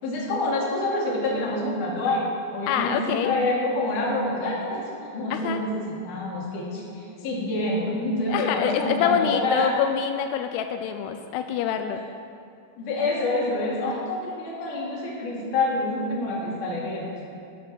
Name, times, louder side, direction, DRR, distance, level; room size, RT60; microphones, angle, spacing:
voice 1, 0.0-9.8 12.8-17.2, left 2 dB, 55° left, -4 dB, 3.5 m, -27 dB
voice 2, 2.7-3.3 5.3-5.6 8.3-12.0, left 9 dB, 90° left, 7 dB, 2.7 m, -26 dB
11.5 x 11.0 x 6.1 m, 2.6 s
omnidirectional pair, 4.7 m